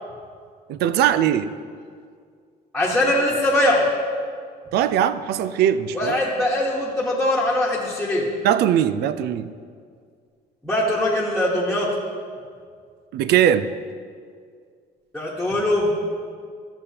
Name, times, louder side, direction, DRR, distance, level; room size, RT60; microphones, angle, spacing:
voice 1, 0.7-1.5 4.7-6.2 8.4-9.5 13.1-13.7, right 10 dB, 75° right, 13 dB, 0.4 m, -20 dB
voice 2, 2.7-3.9 5.9-8.3 10.6-11.9 15.1-15.9, left 1 dB, ahead, -7 dB, 1.3 m, -21 dB
13.5 x 6.8 x 2.9 m, 2.1 s
cardioid pair, 110°, 17 cm